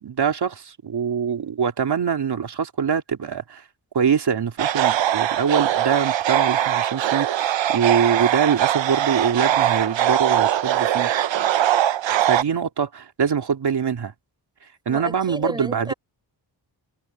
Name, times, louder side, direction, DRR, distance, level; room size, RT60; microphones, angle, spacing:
voice 1, 0.0-3.6 3.9-11.1 12.2-14.1 14.9-15.9, right 7 dB, 60° right, 2.8 m, -24 dB
sound 1, 4.6-12.4, right 11 dB, 80° right, 0.8 m, -21 dB
voice 2, 14.9-15.9, right 1 dB, 10° right, 5.0 m, -32 dB
wide cardioid pair, 170°, 44 cm